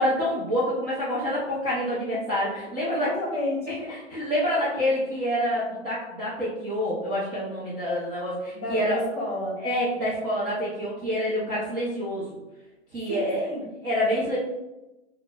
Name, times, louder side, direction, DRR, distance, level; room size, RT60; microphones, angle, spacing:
voice 1, 0.0-3.1 3.9-9.0 9.6-12.3 12.9-13.5 13.8-14.4, equal, 15° right, -9 dB, 0.5 m, -27 dB
voice 2, 2.8-3.8 8.5-9.6 13.1-13.6, left 1 dB, 15° left, -4 dB, 0.9 m, -30 dB
5.8 x 2.0 x 2.2 m, 1.0 s
hypercardioid pair, 140°, 34 cm